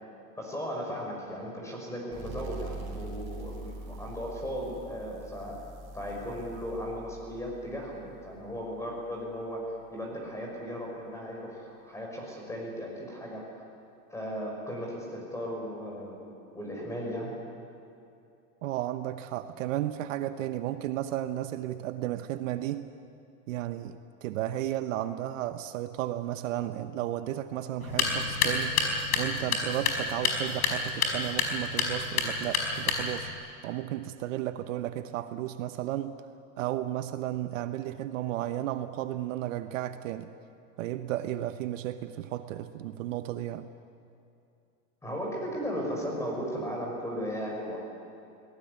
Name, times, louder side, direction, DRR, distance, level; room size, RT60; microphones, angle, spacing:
voice 1, 0.4-5.7 5.9-13.6 14.1-17.3 45.0-47.8, equal, 5° left, -1 dB, 5.8 m, -36 dB
sound 1, 2.1-9.4, right 2 dB, 30° right, 5.9 m, -44 dB
voice 2, 18.6-22.9 23.5-28.8 29.1-36.2 36.6-40.3 40.8-43.7, right 13 dB, 60° right, 10 dB, 1.1 m, -33 dB
sound 2, 27.8-33.3, left 4 dB, 90° left, 5.1 m, -29 dB
23.0 x 19.0 x 9.6 m, 2.7 s
supercardioid pair, 155°, 43 cm